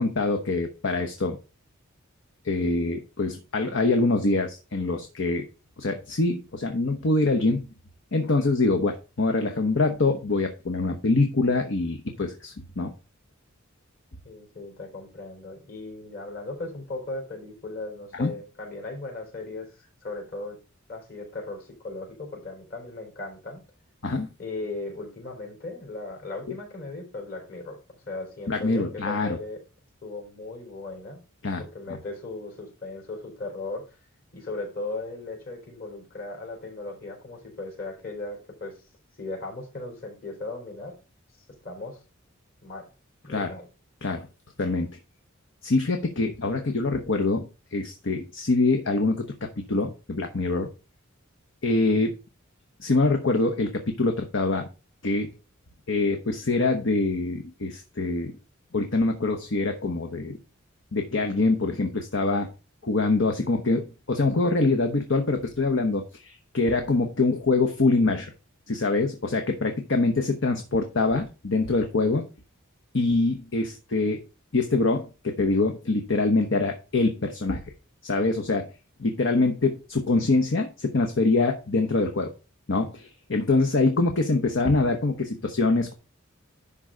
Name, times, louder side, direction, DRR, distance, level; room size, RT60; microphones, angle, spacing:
voice 1, 0.0-1.4 2.4-5.5 5.8-7.7 8.1-12.9 18.2-18.3 24.0-24.3 28.5-29.4 31.4-31.6 43.3-43.5 44.0-44.3 44.6-45.0 45.6-50.7 51.6-52.1 52.8-54.7 55.0-55.3 55.9-58.4 58.7-60.4 60.9-62.5 62.8-63.8 64.1-68.3 68.7-72.3 72.9-74.2 74.5-77.6 78.0-78.7 79.0-82.3 82.7-85.9, left 3 dB, 60° left, 4 dB, 1.0 m, -24 dB
voice 2, 14.2-20.6 20.9-23.6 24.4-27.8 28.1-29.6 30.0-31.2 31.6-34.0 34.3-38.8 39.2-40.9 41.6-42.0 42.6-42.9 43.2-43.7, left 2 dB, 45° left, 0 dB, 3.9 m, -37 dB
11.0 x 3.7 x 5.0 m, 0.32 s
head